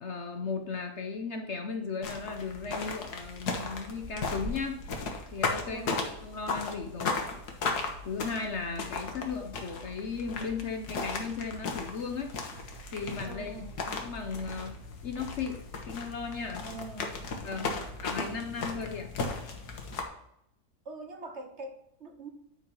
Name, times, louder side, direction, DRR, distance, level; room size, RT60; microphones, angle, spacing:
voice 1, 0.0-4.8 5.3-7.2 8.0-12.3 12.9-14.8 15.0-15.6 15.9-16.6 17.4-17.7 18.0-19.1, left 5 dB, 50° left, 5 dB, 1.0 m, -36 dB
sound 1, 2.0-20.0, left 4 dB, 70° left, 1.8 m, -36 dB
sound 2, 3.0-7.8 8.0-9.2, right 1 dB, 70° right, 3.4 m, -46 dB
voice 2, 5.6-6.0 13.3-13.8 16.6-17.9 20.8-22.3, right 3 dB, 50° right, 5 dB, 1.1 m, -44 dB
10.0 x 4.5 x 5.4 m, 0.75 s
omnidirectional pair, 1.7 m